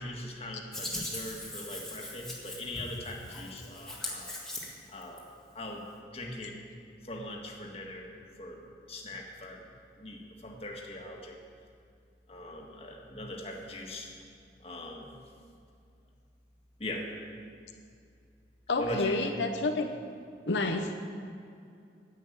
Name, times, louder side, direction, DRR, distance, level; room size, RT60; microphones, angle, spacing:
voice 1, 0.0-4.3 4.9-5.2 5.5-5.8 6.1-6.5 7.0-8.1 8.4-8.6 8.9-9.6 10.0-11.4 12.3-14.1 14.6-15.1 16.8-17.1 18.8-19.2, left 1 dB, 35° left, 0 dB, 1.7 m, -40 dB
Hands, 0.7-5.2, left 1 dB, 5° left, 1.7 m, -40 dB
voice 2, 18.7-19.9 20.5-21.0, left 3 dB, 85° left, 5 dB, 0.8 m, -29 dB
10.5 x 8.5 x 9.2 m, 2.4 s
head